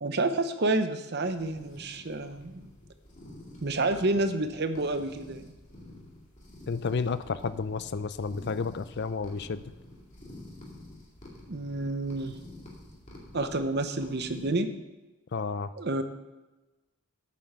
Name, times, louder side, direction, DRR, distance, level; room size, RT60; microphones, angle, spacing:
voice 1, 0.0-2.7 3.6-5.4 11.5-12.4 13.3-14.7 15.8-16.0, right 2 dB, 50° right, 9 dB, 0.8 m, -29 dB
sound 1, 1.2-14.5, left 1 dB, 30° left, 2.4 m, -49 dB
voice 2, 6.7-9.7 15.3-15.7, left 5 dB, 50° left, 14 dB, 0.5 m, -31 dB
8.5 x 7.6 x 6.7 m, 1.1 s
head